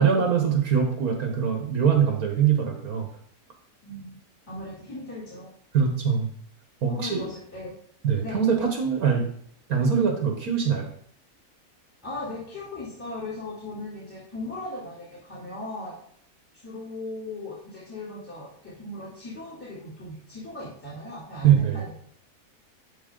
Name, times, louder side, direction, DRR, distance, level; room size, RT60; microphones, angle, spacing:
voice 1, 0.0-3.1 5.7-6.3 6.8-7.2 8.0-9.3 9.7-10.9 21.4-21.8, right 7 dB, 70° right, 3 dB, 1.5 m, -23 dB
voice 2, 3.8-4.2 4.5-5.5 6.8-7.7 8.2-8.4 12.0-16.0 16.6-21.9, left 2 dB, 10° left, -8 dB, 2.8 m, -38 dB
11.5 x 4.1 x 3.7 m, 0.67 s
omnidirectional pair, 1.7 m